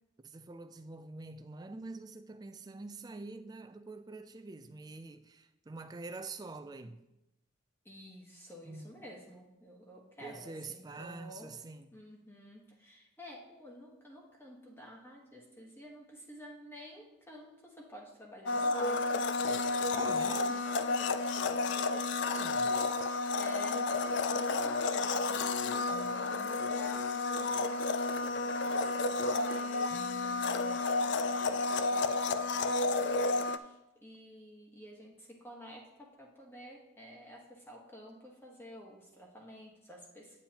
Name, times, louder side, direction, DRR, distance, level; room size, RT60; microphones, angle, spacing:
voice 1, 0.2-7.0 8.7-8.9 10.2-11.9 19.9-20.7 22.2-22.7 25.9-26.7 29.9-30.9, right 3 dB, 20° right, 0.3 m, -46 dB
voice 2, 7.8-11.5 11.9-23.0 23.4-40.4, left 1 dB, 10° left, 1.2 m, -51 dB
Domestic sounds home sounds, 18.5-33.6, left 3 dB, 60° left, 0.4 m, -31 dB
9.0 x 8.7 x 2.9 m
head